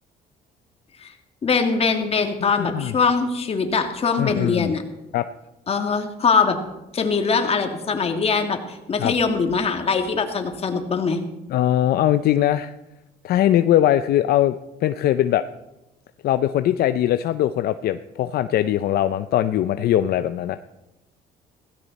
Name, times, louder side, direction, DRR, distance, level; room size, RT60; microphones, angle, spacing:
voice 1, 1.4-4.8 5.7-6.6 6.9-11.2, left 5 dB, 35° left, 5 dB, 2.3 m, -22 dB
voice 2, 2.4-2.9 4.2-4.7 5.1-5.3 9.0-9.1 11.5-12.7 13.2-14.6 14.8-15.4 16.2-20.6, left 12 dB, 65° left, 11 dB, 0.6 m, -21 dB
16.5 x 16.0 x 4.2 m, 0.97 s
cardioid pair, 110°, 17 cm